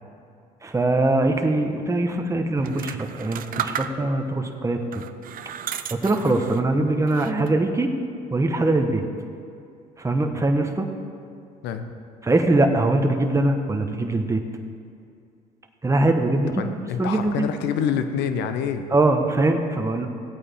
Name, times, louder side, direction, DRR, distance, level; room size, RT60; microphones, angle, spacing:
voice 1, 0.6-5.0 5.9-7.9 8.3-9.0 10.0-10.9 12.2-14.4 15.8-17.5 18.9-20.1, right 2 dB, 15° right, 4 dB, 1.1 m, -22 dB
sound 1, 2.6-4.3 4.9-6.7 7.1-7.7, right 9 dB, 55° right, 0.6 m, -34 dB
voice 2, 11.6-12.0 16.6-18.9, left 8 dB, 80° left, 8 dB, 0.8 m, -27 dB
16.0 x 8.6 x 3.6 m, 2.4 s
supercardioid pair, 75°, 17 cm